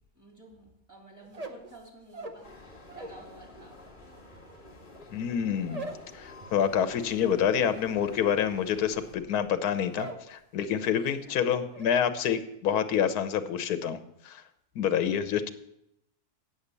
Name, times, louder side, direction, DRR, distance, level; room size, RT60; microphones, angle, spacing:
voice 1, 0.1-2.7 2.9-3.8 10.9-11.4 14.9-15.1, right 1 dB, 10° right, -2 dB, 3.5 m, -52 dB
sound 1, 1.2-3.3 3.5-10.3 10.6-11.1 11.4-11.9, right 2 dB, 30° right, 0.8 m, -44 dB
sound 2, 2.4-9.1, left 2 dB, 35° left, 1.6 m, -50 dB
voice 2, 5.1-14.0 14.2-14.4 14.8-15.5, left 8 dB, 80° left, 11 dB, 1.3 m, -27 dB
8.7 x 8.0 x 6.8 m, 0.81 s
omnidirectional pair, 1.6 m